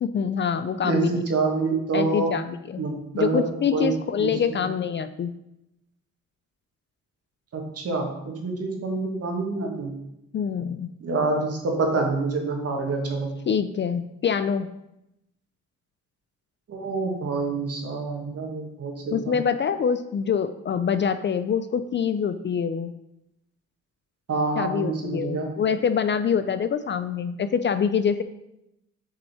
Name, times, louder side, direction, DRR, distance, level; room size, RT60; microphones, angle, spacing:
voice 1, 0.0-1.2 1.9-2.8 3.2-5.3 10.3-10.9 13.5-14.7 19.1-22.9 24.6-28.2, left 7 dB, 40° left, 11 dB, 0.4 m, -25 dB
voice 2, 0.8-2.3 2.8-3.4 3.7-3.9 4.2-4.6 7.5-9.9 11.0-13.3 16.7-19.3 24.3-25.5, right 3 dB, 50° right, 2 dB, 1.7 m, -27 dB
6.8 x 5.4 x 4.3 m, 0.86 s
cardioid pair, 90°, 30 cm